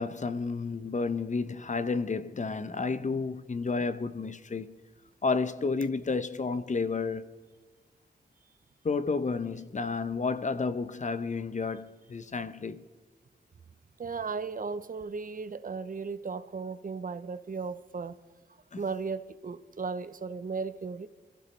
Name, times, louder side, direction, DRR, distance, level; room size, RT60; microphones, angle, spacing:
voice 1, 0.0-4.7 5.2-7.3 8.8-12.8 18.7-18.8, left 4 dB, 45° left, 0.8 m, -31 dB
voice 2, 14.0-18.2 18.8-21.1, right 4 dB, 55° right, 0.8 m, -36 dB
23.5 x 14.5 x 3.3 m
cardioid pair, 55°, 17 cm